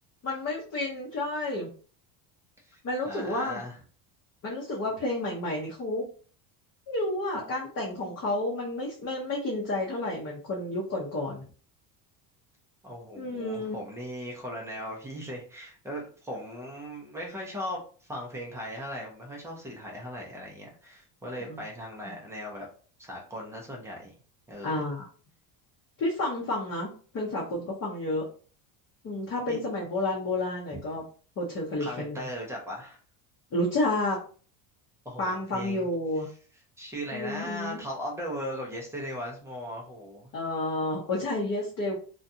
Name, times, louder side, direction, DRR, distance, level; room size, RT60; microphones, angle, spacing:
voice 1, 0.2-1.7 2.8-3.6 4.4-6.0 6.9-11.4 13.2-13.8 21.5-21.6 22.0-22.1 24.6-25.1 26.0-28.2 29.0-31.0 31.4-32.2 33.5-34.2 35.2-36.3 37.1-37.8 40.3-42.0, left 2 dB, 30° left, -4 dB, 0.6 m, -30 dB
voice 2, 3.1-3.8 12.8-22.7 23.0-24.1 24.5-24.8 29.5-29.6 31.8-33.0 35.1-35.9 36.8-40.3, equal, 5° right, -2 dB, 0.3 m, -38 dB
2.7 x 2.2 x 2.5 m, 0.41 s
cardioid pair, 135°, 50 cm